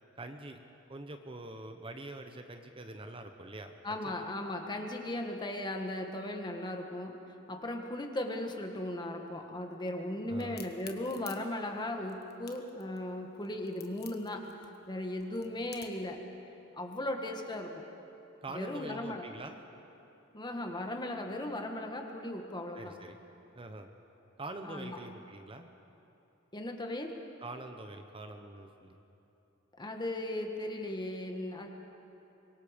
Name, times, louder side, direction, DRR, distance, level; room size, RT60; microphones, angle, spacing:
voice 1, 0.1-0.6 0.9-3.7 10.3-10.6 18.4-19.6 22.7-23.2 23.5-23.9 24.4-25.7 27.4-29.0, right 2 dB, 25° right, 6 dB, 0.9 m, -44 dB
voice 2, 3.8-14.5 14.9-16.3 16.7-17.9 18.5-19.3 20.3-23.0 24.6-25.0 26.5-27.2 29.8-31.7, left 1 dB, 20° left, 3 dB, 1.6 m, -37 dB
Crack, 10.4-16.1, left 10 dB, 55° left, 1.4 m, -51 dB
25.0 x 22.5 x 5.2 m, 2.9 s
head